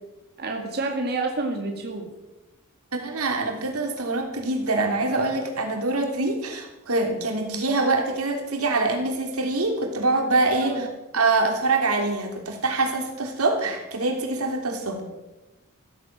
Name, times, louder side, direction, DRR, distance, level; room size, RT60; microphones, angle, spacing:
voice 1, 0.4-2.1 10.5-10.9, right 3 dB, 50° right, 2 dB, 2.0 m, -29 dB
voice 2, 2.9-10.8 11.1-15.0, right 2 dB, 85° right, 3 dB, 3.3 m, -24 dB
15.0 x 14.5 x 6.1 m, 1.0 s
head